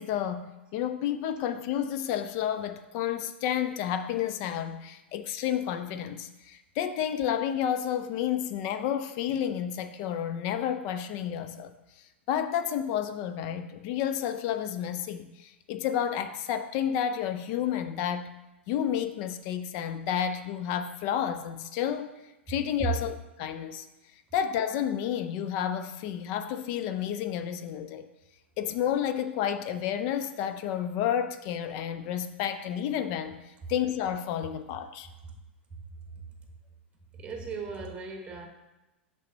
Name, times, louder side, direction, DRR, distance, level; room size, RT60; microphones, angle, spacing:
voice 1, 0.0-11.7 12.3-18.4 18.7-22.1 22.5-23.9 24.3-28.1 28.6-35.1, left 9 dB, 40° left, 9 dB, 0.4 m, -31 dB
voice 2, 37.1-38.5, right 6 dB, 15° right, 2 dB, 1.1 m, -34 dB
5.4 x 3.4 x 5.3 m, 1.0 s
figure-of-eight pair, 100°, 6 cm